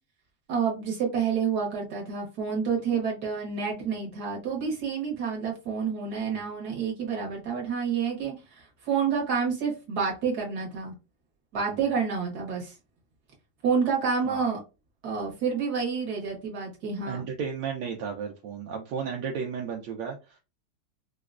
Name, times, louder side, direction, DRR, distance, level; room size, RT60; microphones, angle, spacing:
voice 1, 0.5-10.9 11.5-12.7 13.6-14.6 15.0-17.2, right 6 dB, 65° right, -1 dB, 1.5 m, -29 dB
voice 2, 14.2-14.5 17.0-20.4, right 6 dB, 80° right, 1 dB, 1.3 m, -34 dB
4.8 x 2.2 x 2.4 m, 0.28 s
omnidirectional pair, 1.9 m